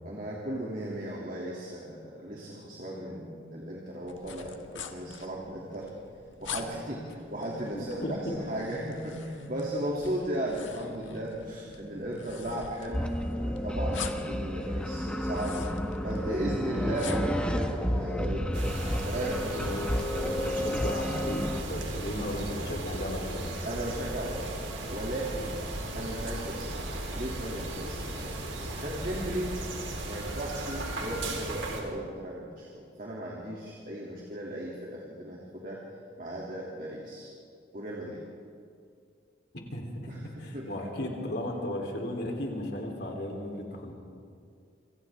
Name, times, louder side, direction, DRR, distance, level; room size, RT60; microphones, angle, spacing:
voice 1, 0.0-5.9 6.4-15.6 16.0-18.7 19.0-19.7 20.1-20.4 23.6-25.5 25.9-28.3 28.7-35.8 36.2-37.3 37.7-38.2 40.1-40.7, right 1 dB, 45° right, -3 dB, 2.8 m, -36 dB
sound 1, 4.1-17.4, left 6 dB, 90° left, 1.4 m, -45 dB
voice 2, 7.7-8.3 19.6-19.9 20.2-23.5 39.5-40.1 40.4-43.9, left 1 dB, 60° left, 0 dB, 3.7 m, -35 dB
sound 2, 12.9-21.6, equal, 5° left, 1.2 m, -31 dB
sound 3, 18.5-31.8, right 1 dB, 85° right, 3.7 m, -36 dB
28.0 x 26.0 x 3.7 m, 2.3 s
head